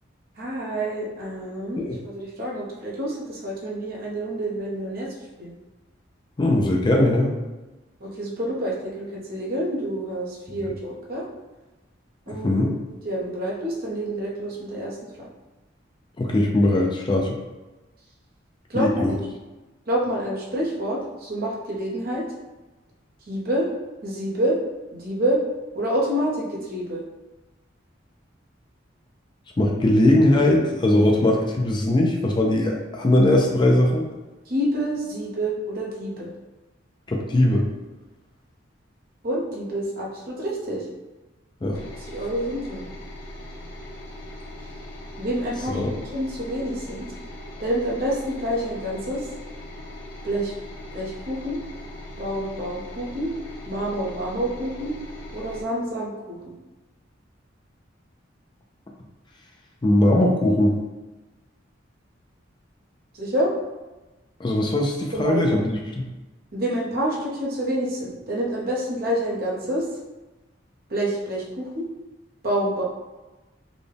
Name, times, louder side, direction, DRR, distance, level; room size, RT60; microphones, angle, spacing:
voice 1, 0.4-5.1 5.4-5.5 8.0-11.2 12.3-12.7 13.0-14.9 18.7-19.2 19.9-22.2 23.3-23.7 24.0-24.6 24.9-25.4 25.8-27.0 34.5-36.3 39.2-40.8 42.1-42.8 45.2-45.8 46.1-47.0 47.6-49.2 50.2-50.5 50.9-51.6 52.2-53.3 53.7-54.9 55.3-56.4 63.2-63.5 65.1-65.5 66.5-69.8 70.9-71.9 72.4-72.8, right 1 dB, 50° right, -4 dB, 0.9 m, -27 dB
voice 2, 6.4-7.3 12.3-12.7 16.2-17.4 18.7-19.2 29.6-34.1 37.1-37.7 41.6-41.8 45.6-45.9 59.8-60.7 64.4-66.1, left 1 dB, 25° left, 0 dB, 0.4 m, -20 dB
sound 1, 41.7-55.6, left 1 dB, 80° left, 1.0 m, -39 dB
4.0 x 2.2 x 3.4 m, 1.1 s
head